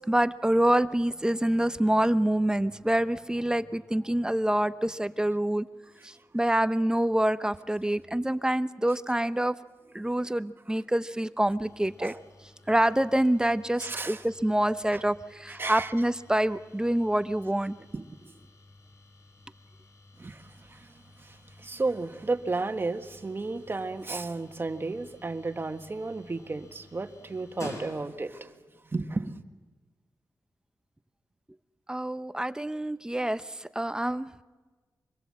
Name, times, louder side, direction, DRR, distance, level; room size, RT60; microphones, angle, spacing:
voice 1, 0.0-5.7 6.0-9.5 9.9-12.1 12.7-17.7 31.9-34.3, right 1 dB, 10° right, 0.7 m, -26 dB
sound 1, 11.6-28.5, left 1 dB, 50° left, 5.3 m, -51 dB
voice 2, 13.8-14.2 14.9-15.0 15.5-15.9 17.9-18.3 20.2-28.5 28.8-29.4, right 3 dB, 35° right, 1.5 m, -33 dB
26.0 x 21.5 x 7.6 m
wide cardioid pair, 90°, 7 cm